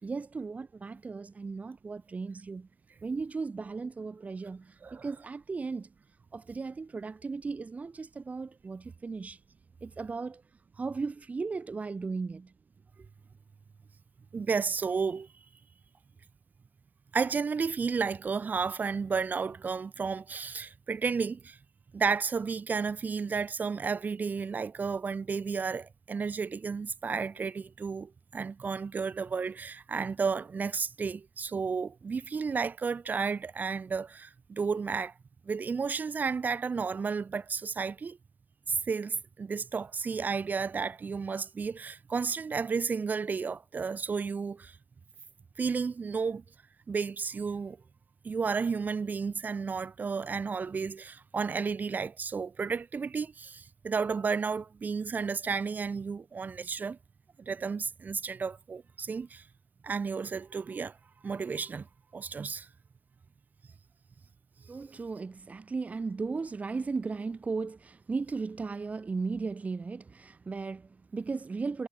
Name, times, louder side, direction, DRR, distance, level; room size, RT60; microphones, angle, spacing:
voice 1, 0.0-2.7 3.0-5.9 6.3-9.4 9.8-10.4 10.7-12.5 13.0-13.1 64.7-71.9, right 4 dB, 50° right, 1.7 m, -36 dB
voice 2, 14.3-15.3 17.1-21.6 21.9-35.1 35.5-38.2 38.7-44.8 45.6-46.4 46.9-47.8 48.2-57.0 57.4-59.4 59.8-61.0 61.2-61.9 62.1-62.7, right 5 dB, 70° right, 2.0 m, -32 dB
wide cardioid pair, 115°, 3 cm